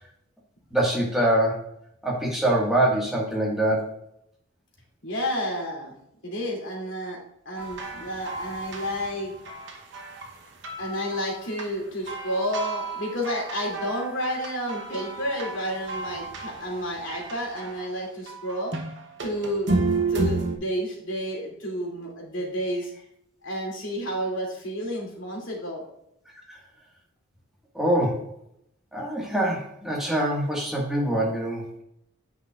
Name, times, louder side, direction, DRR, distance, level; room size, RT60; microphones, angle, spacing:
voice 1, 0.7-1.6 2.0-3.9 26.5-26.6 27.7-28.2 28.9-31.6, right 1 dB, ahead, -3 dB, 1.7 m, -24 dB
voice 2, 5.0-5.9 6.2-9.3 10.8-18.7 19.2-19.7 20.1-22.9 23.4-25.8, equal, 65° left, -1 dB, 2.7 m, -30 dB
sound 1, 7.6-10.3 10.6-11.7 12.1-17.8 18.3-20.6, right 3 dB, 55° right, 1.0 m, -32 dB
9.2 x 5.8 x 2.5 m, 0.75 s
head